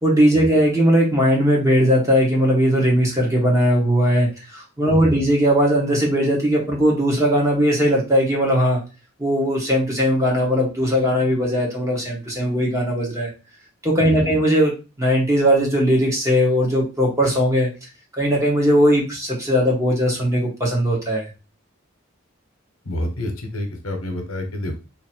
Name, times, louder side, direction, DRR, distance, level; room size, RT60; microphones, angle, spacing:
voice 1, 0.0-8.8 9.2-13.3 13.8-14.7 15.0-17.7 18.2-21.2, equal, 15° right, -2 dB, 1.1 m, -19 dB
voice 2, 4.9-5.2 14.0-14.3 22.8-24.8, left 1 dB, 85° left, 4 dB, 0.9 m, -28 dB
2.9 x 2.7 x 4.3 m, 0.31 s
head